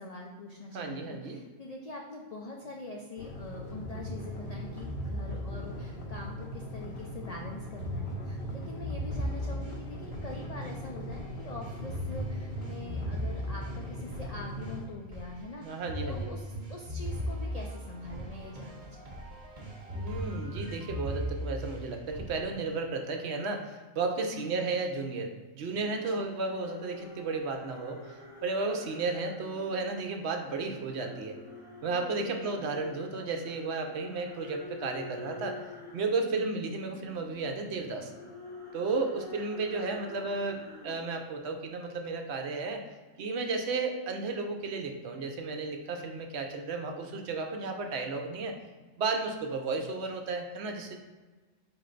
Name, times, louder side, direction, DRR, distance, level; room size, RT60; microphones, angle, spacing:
voice 1, 0.0-19.4 24.3-24.6 26.1-26.3 31.9-32.8 36.2-36.5, left 2 dB, 85° left, -1 dB, 0.3 m, -44 dB
voice 2, 0.7-1.4 15.6-16.3 19.9-31.4 31.8-35.6 35.9-38.1 38.7-42.8 43.2-48.5 49.0-51.0, right 3 dB, 65° right, 4 dB, 0.7 m, -33 dB
sound 1, 3.2-14.9, equal, 55° left, 0.7 m, -41 dB
sound 2, 3.8-6.9 7.8-22.5, equal, 35° right, 0.8 m, -38 dB
sound 3, 25.7-29.8 30.4-41.5, left 2 dB, 30° left, 0.7 m, -48 dB
4.3 x 3.2 x 3.8 m, 1.3 s
omnidirectional pair, 1.4 m